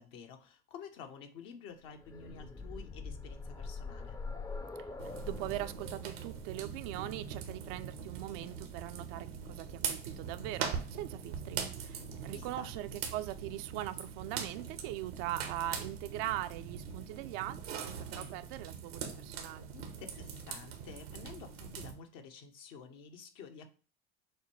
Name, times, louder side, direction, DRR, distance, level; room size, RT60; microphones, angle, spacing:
voice 1, 0.0-4.2 12.3-12.7 19.7-23.7, left 6 dB, 75° left, 0.9 m, -50 dB
sound 1, 1.8-9.6 10.8-10.9 11.2-11.3, left 3 dB, 10° left, 0.4 m, -45 dB
sound 2, 5.0-21.9, right 7 dB, 90° right, 0.9 m, -42 dB
voice 2, 5.3-19.7, right 14 dB, 70° right, 0.5 m, -41 dB
6.5 x 2.2 x 3.1 m
hypercardioid pair, 75°, 30 cm